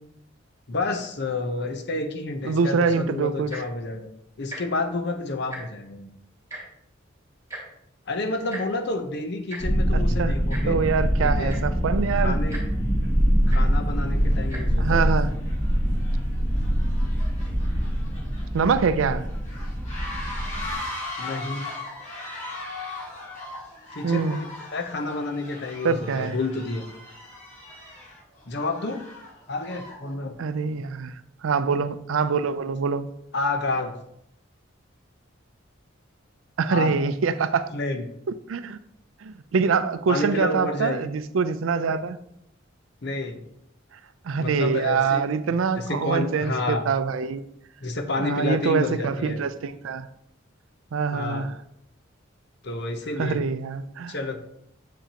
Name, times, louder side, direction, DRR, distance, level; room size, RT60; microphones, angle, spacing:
voice 1, 0.7-4.1 4.4-6.1 8.1-10.8 11.2-11.6 12.1-12.6 13.5-15.1 21.2-21.7 23.9-24.5 24.7-26.9 28.5-29.1 29.5-30.3 33.3-34.0 36.7-36.9 37.7-38.0 40.1-41.1 43.0-43.4 44.4-45.2 45.8-46.9 47.8-49.4 51.1-51.5 52.6-53.4 54.1-54.4, left 2 dB, 60° left, 0.8 m, -29 dB
voice 2, 2.4-3.5 9.9-10.4 10.7-12.4 14.8-15.3 18.5-19.3 24.0-24.4 25.8-26.4 30.4-33.1 36.6-37.7 38.5-38.8 39.2-42.2 44.2-47.4 48.2-50.1 50.9-51.5 53.2-54.2, right 5 dB, 85° right, 0.4 m, -24 dB
Tick-tock, 3.4-3.8 4.4-4.6 4.9-5.1 5.3-5.9 6.5-6.6 7.5-7.6 8.5-8.6 9.5-9.6 10.5-10.6 11.2-11.3 11.5-11.8 12.5-12.6 13.5-13.6 14.4-14.6 15.3-15.4, right 1 dB, 15° right, 2.4 m, -37 dB
sound 1, 9.6-20.8, equal, 15° left, 2.3 m, -24 dB
sound 2, 12.7-12.8 13.5-13.8 14.1-30.1, left 2 dB, 40° left, 2.0 m, -39 dB
7.1 x 5.7 x 2.9 m
head